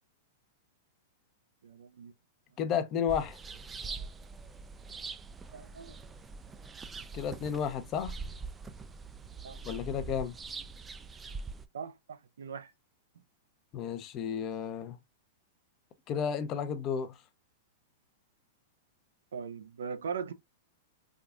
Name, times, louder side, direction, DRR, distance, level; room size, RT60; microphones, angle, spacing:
voice 1, 1.6-2.1 5.5-6.0 9.4-9.6 11.7-12.7 19.3-20.3, right 6 dB, 80° right, 0.5 m, -40 dB
voice 2, 2.6-3.4 7.1-8.1 9.6-10.3 13.7-15.0 16.1-17.1, left 7 dB, 35° left, 0.6 m, -32 dB
sound 1, 3.1-11.7, right 4 dB, 20° right, 0.3 m, -43 dB
3.5 x 2.3 x 2.4 m
hypercardioid pair, 110°, 0 cm